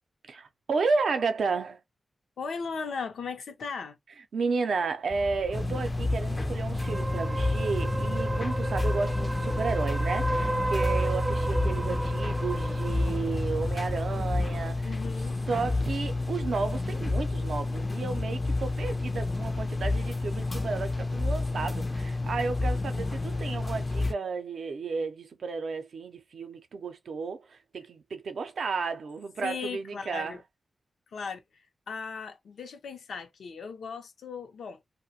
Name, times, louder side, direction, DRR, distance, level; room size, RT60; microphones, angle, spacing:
voice 1, 0.3-1.8 4.3-14.9 15.5-30.4, right 4 dB, 80° right, 0.4 m, -32 dB
voice 2, 2.4-4.0 14.8-15.4 29.4-30.4 31.1-31.4 31.9-34.8, left 5 dB, 85° left, 0.5 m, -37 dB
sound 1, 5.1-14.7, right 2 dB, 25° right, 0.5 m, -32 dB
sound 2, 5.5-24.1, left 2 dB, 35° left, 0.3 m, -30 dB
2.4 x 2.1 x 2.7 m
cardioid pair, 55°, 0 cm